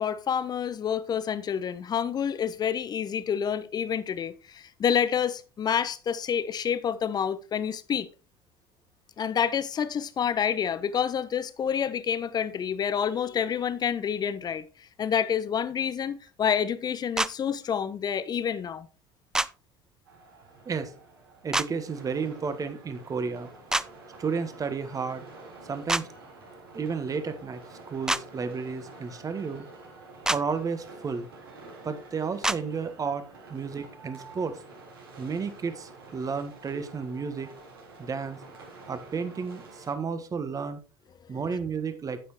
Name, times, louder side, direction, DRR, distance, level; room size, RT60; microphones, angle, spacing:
voice 1, 0.0-8.1 9.2-14.6 15.0-18.9, left 8 dB, 35° left, 0.9 m, -28 dB
sound 1, 17.2-17.3 19.3-19.5 21.5-21.7 23.7-23.9 25.9-26.0 28.1-28.2 30.2-30.4 32.4-32.6, right 1 dB, 5° right, 0.4 m, -25 dB
sound 2, 20.0-39.9, right 3 dB, 80° right, 3.8 m, -48 dB
voice 2, 21.4-23.5 24.2-25.2 25.7-26.1 26.7-27.6 27.9-29.7 30.3-31.3 31.8-33.2 33.5-34.6 35.2-37.5 38.0-38.4 38.9-40.8 41.3-42.2, right 5 dB, 30° right, 1.4 m, -32 dB
9.2 x 8.6 x 3.0 m
hypercardioid pair, 70°, 12 cm